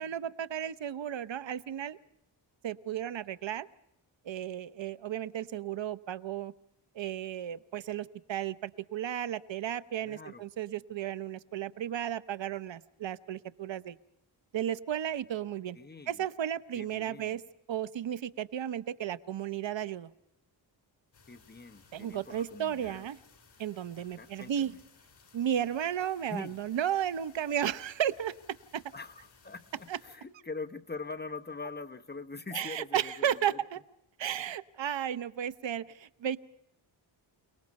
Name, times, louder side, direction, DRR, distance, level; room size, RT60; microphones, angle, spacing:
voice 1, 0.0-2.0 2.6-3.7 4.2-6.5 6.9-14.0 14.5-15.8 16.1-17.4 17.7-20.1 21.9-23.2 23.6-24.7 25.3-28.3 28.7-28.8 29.9-30.0 32.5-33.8 34.2-36.4, right 10 dB, 70° right, 15 dB, 0.8 m, -34 dB
voice 2, 10.0-10.5 15.8-16.3 16.7-17.4 21.3-23.1 24.0-24.8 26.0-26.6 28.9-33.6, left 4 dB, 20° left, 7 dB, 1.0 m, -43 dB
sound 1, 21.1-30.2, left 5 dB, 60° left, 5.6 m, -61 dB
28.5 x 19.5 x 5.3 m, 0.80 s
wide cardioid pair, 130°, 46 cm